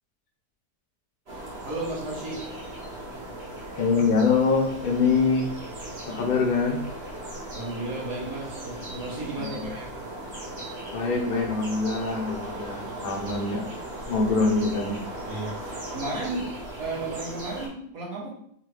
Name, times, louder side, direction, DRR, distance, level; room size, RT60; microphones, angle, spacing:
sound 1, 1.3-17.7, right 1 dB, 40° right, 1.3 m, -38 dB
voice 1, 1.6-2.4 7.5-9.9 15.3-18.3, right 2 dB, 60° right, -5 dB, 1.6 m, -34 dB
voice 2, 3.8-5.5 6.1-6.9 9.3-9.7 10.9-13.7 14.1-15.1, left 4 dB, 70° left, 1 dB, 0.4 m, -24 dB
3.9 x 3.2 x 3.2 m, 0.66 s
omnidirectional pair, 1.8 m